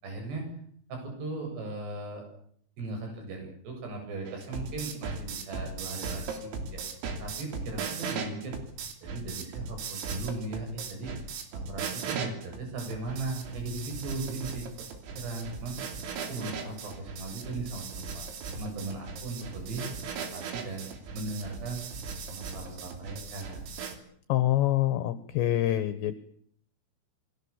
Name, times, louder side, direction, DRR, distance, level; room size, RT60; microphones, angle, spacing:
voice 1, 0.0-0.5 0.9-2.2 2.8-6.8 7.2-8.5 9.0-11.1 11.5-14.6 15.1-15.8 16.3-18.3 18.5-19.9 20.2-21.8 22.3-23.6, right 3 dB, 55° right, 3 dB, 9.8 m, -37 dB
sound 1, 4.3-24.0, right 5 dB, 80° right, 5.8 m, -38 dB
voice 2, 24.3-26.1, left 14 dB, 70° left, 12 dB, 3.0 m, -26 dB
28.0 x 23.0 x 7.3 m, 0.65 s
omnidirectional pair, 6.0 m